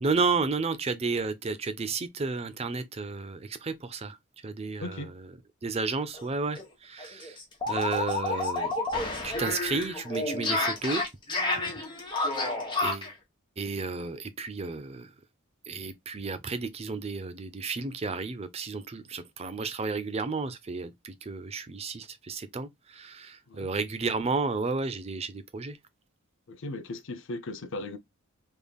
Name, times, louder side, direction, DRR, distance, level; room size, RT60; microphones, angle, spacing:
voice 1, 0.0-4.2 4.4-5.0 5.6-7.4 7.7-8.7 9.2-11.0 12.2-12.3 12.8-13.1 13.6-15.1 15.7-22.7 22.9-25.8, right 4 dB, 30° right, 0.5 m, -32 dB
voice 2, 4.8-5.1 23.5-23.7 26.5-28.0, left 2 dB, 60° left, 0.6 m, -37 dB
sound 1, 6.1-6.3 6.6-6.7 7.0-13.1, left 2 dB, 20° left, 1.2 m, -30 dB
3.5 x 3.3 x 2.3 m
head